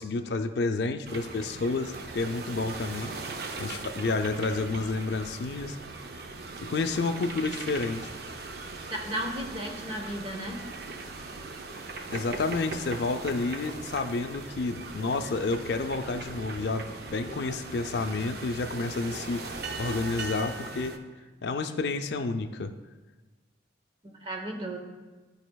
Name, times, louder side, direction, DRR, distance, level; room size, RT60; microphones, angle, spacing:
voice 1, 0.0-3.1 3.6-5.8 6.6-8.1 12.1-19.5 19.8-21.0 21.4-22.7, left 3 dB, 65° left, 6 dB, 0.4 m, -30 dB
sound 1, 1.1-21.0, right 3 dB, 55° right, 0.5 m, -39 dB
voice 2, 8.9-10.6 24.0-24.8, right 1 dB, 30° right, 2 dB, 0.9 m, -34 dB
13.0 x 4.9 x 2.3 m, 1.3 s
head